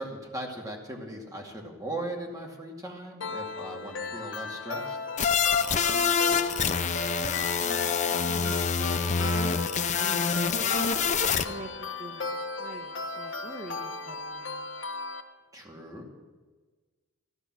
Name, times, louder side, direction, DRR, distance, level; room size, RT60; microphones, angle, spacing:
voice 1, 0.0-5.0 15.5-16.1, right 1 dB, 15° right, 0 dB, 2.4 m, -38 dB
sound 1, 3.2-15.2, left 3 dB, 60° left, 1.3 m, -36 dB
sound 2, 5.2-11.4, left 6 dB, 35° left, 0.6 m, -26 dB
voice 2, 5.8-6.7 7.2-11.0 11.4-14.7, right 1 dB, 35° right, 0 dB, 1.2 m, -44 dB
15.5 x 12.0 x 6.3 m, 1.4 s
head